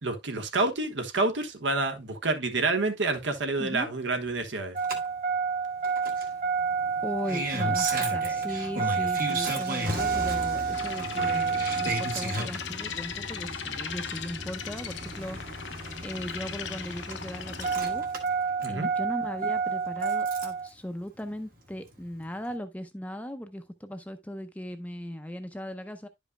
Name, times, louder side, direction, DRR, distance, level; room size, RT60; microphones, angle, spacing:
voice 1, 0.0-4.8 18.6-18.9, right 3 dB, 80° right, 1.2 m, -28 dB
voice 2, 3.6-3.9 7.0-15.6 16.0-18.0 18.7-26.1, equal, 10° left, 0.6 m, -38 dB
Engine starting, 4.7-20.7 21.9-22.0, right 4 dB, 50° right, 1.3 m, -30 dB
sound 1, 10.7-17.8, left 7 dB, 75° left, 0.8 m, -38 dB
11.0 x 5.2 x 2.2 m
head